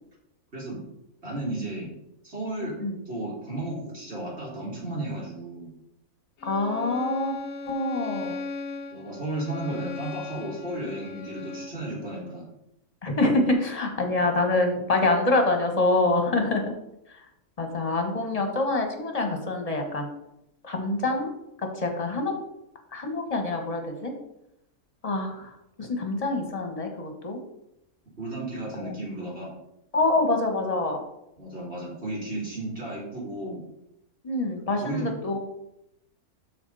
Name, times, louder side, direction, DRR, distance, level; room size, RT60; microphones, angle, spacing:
voice 1, 0.5-0.8 1.2-1.9 2.2-2.7 3.1-5.7 8.9-12.5 13.9-14.1 28.2-29.5 31.4-33.6 34.8-35.1, right 1 dB, 45° right, -6 dB, 3.8 m, -34 dB
voice 2, 2.6-3.0 6.4-7.3 7.6-8.4 13.0-16.6 17.1-17.2 17.6-20.1 20.6-21.3 21.6-22.3 22.9-24.1 25.0-27.4 28.8-28.9 29.9-31.0 34.2-35.4, left 2 dB, 25° left, 3 dB, 1.5 m, -26 dB
Bowed string instrument, 6.4-11.9, left 3 dB, 55° left, 1.0 m, -38 dB
12.5 x 4.4 x 4.2 m, 0.83 s
omnidirectional pair, 1.6 m